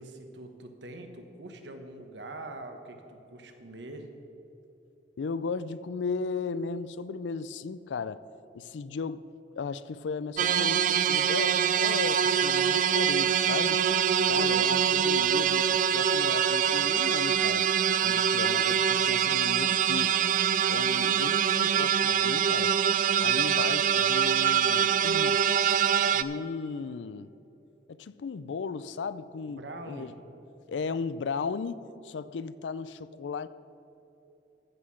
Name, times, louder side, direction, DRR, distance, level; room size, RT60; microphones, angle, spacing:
voice 1, 0.0-4.1 29.5-30.1, right 2 dB, 80° right, 6 dB, 1.1 m, -43 dB
voice 2, 5.2-8.2 8.5-9.2 9.5-13.8 14.3-17.7 18.0-20.1 20.7-22.7 23.2-25.4 26.1-27.3 27.9-30.1 30.7-33.5, left 5 dB, 90° left, 16 dB, 0.4 m, -36 dB
sound 1, 10.4-26.2, right 8 dB, 45° right, 0.3 m, -24 dB
14.5 x 5.8 x 6.3 m, 3.0 s
head